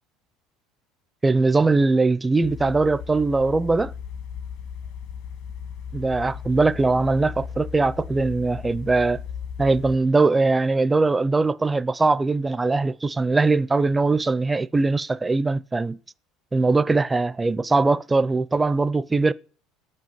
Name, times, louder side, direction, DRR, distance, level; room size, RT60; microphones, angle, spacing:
voice 1, 1.2-3.9 5.9-9.2 9.6-16.0 16.5-19.3, right 3 dB, 15° right, 0.4 m, -21 dB
sound 1, 2.4-10.0, left 7 dB, 70° left, 2.1 m, -36 dB
9.0 x 7.6 x 7.8 m
supercardioid pair, 120°, 0 cm